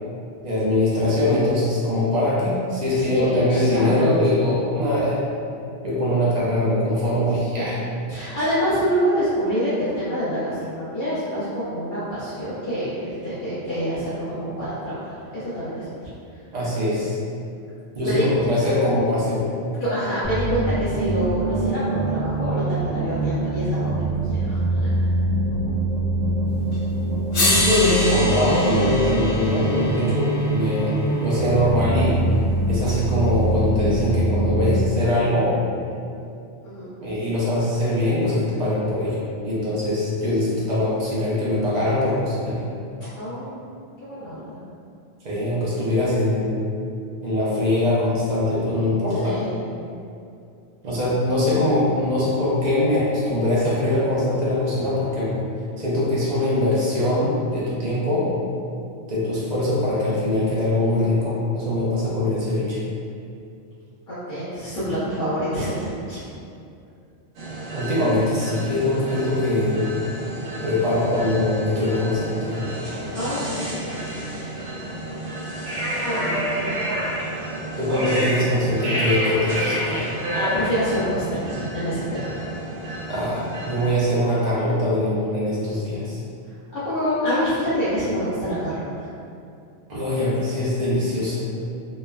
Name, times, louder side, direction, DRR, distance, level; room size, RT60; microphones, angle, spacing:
voice 1, 0.4-5.2 5.8-7.8 16.5-17.2 17.9-19.5 27.3-32.2 32.7-35.5 37.0-39.2 39.4-42.6 45.2-46.5 47.2-49.4 50.8-55.4 55.8-58.3 59.1-62.8 67.7-69.9 70.6-72.6 77.8-80.0 83.1-86.2 89.9-91.4, left 1 dB, 45° right, -8 dB, 0.6 m, -22 dB
voice 2, 3.1-3.9 7.3-7.7 8.1-15.9 18.0-18.2 19.8-24.9 36.6-36.9 43.2-43.6 44.0-44.6 49.2-49.8 64.1-66.2 73.1-73.8 76.0-76.7 79.9-82.5 86.7-89.1 91.5-91.6, equal, 50° left, -13 dB, 0.7 m, -27 dB
sound 1, 20.2-34.9, right 2 dB, 20° left, 0.7 m, -24 dB
sound 2, 26.7-26.8 27.3-31.5 32.9-33.0, left 1 dB, 90° left, 1.2 m, -26 dB
sound 3, 67.4-83.9, right 1 dB, 80° right, 1.0 m, -29 dB
3.1 x 2.1 x 2.2 m, 2.5 s
omnidirectional pair, 1.2 m